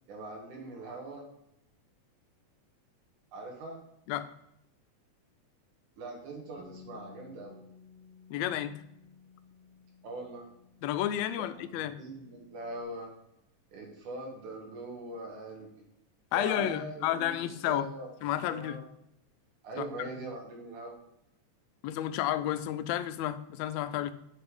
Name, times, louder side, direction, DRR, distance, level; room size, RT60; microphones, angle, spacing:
voice 1, 0.1-1.3 3.3-3.8 6.0-7.6 10.0-10.5 11.3-13.1 13.7-15.8 16.3-18.1 18.5-18.8 19.6-21.0, right 2 dB, 90° right, -1 dB, 3.3 m, -42 dB
Bass guitar, 6.6-12.8, left 5 dB, 65° right, 1.5 m, -56 dB
voice 2, 8.3-8.7 10.8-12.0 16.3-17.9 18.2-18.8 21.8-24.1, left 12 dB, 75° left, 12 dB, 1.8 m, -31 dB
7.9 x 5.7 x 5.4 m, 0.80 s
omnidirectional pair, 3.4 m